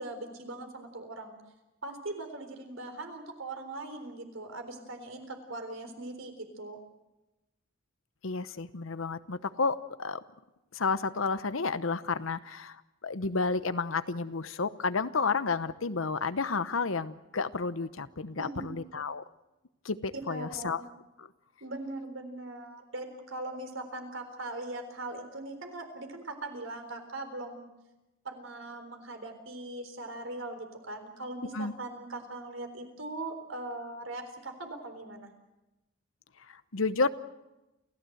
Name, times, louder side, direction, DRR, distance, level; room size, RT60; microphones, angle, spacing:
voice 1, 0.0-1.4 1.8-6.8 18.4-18.7 20.3-20.9 21.6-27.7 28.2-35.3, right 2 dB, 75° right, 6 dB, 3.9 m, -40 dB
voice 2, 8.2-10.2 10.7-19.2 19.8-20.8 21.2-21.3 31.5-31.7 36.5-37.1, left 4 dB, 80° left, 13 dB, 0.9 m, -31 dB
29.0 x 15.0 x 7.9 m, 1.0 s
head